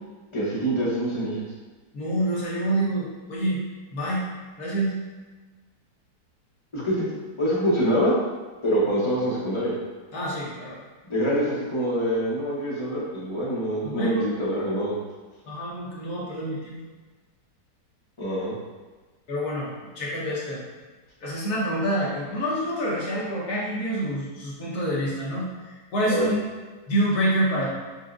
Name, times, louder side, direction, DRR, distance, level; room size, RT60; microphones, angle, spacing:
voice 1, 0.3-1.4 6.7-8.1 8.6-9.8 11.0-15.0 18.2-18.5 26.1-26.3, equal, 30° left, -7 dB, 0.5 m, -25 dB
voice 2, 1.9-3.6 3.9-4.2 4.6-4.9 10.1-10.8 13.8-14.3 15.5-16.8 19.3-20.6 21.2-26.4 26.9-27.7, right 1 dB, 65° left, -6 dB, 1.4 m, -27 dB
6.0 x 2.1 x 2.5 m, 1.3 s
omnidirectional pair, 1.8 m